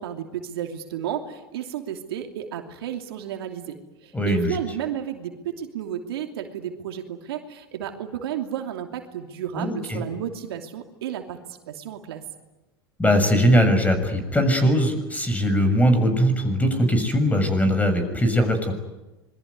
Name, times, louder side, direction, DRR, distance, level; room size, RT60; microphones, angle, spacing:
voice 1, 0.0-11.4 11.7-12.2, right 9 dB, 75° right, 4 dB, 2.9 m, -32 dB
voice 2, 4.1-4.6 9.5-10.0 13.0-18.7, equal, 10° left, 8 dB, 6.6 m, -20 dB
26.5 x 22.0 x 9.5 m, 1.1 s
hypercardioid pair, 90°, 13 cm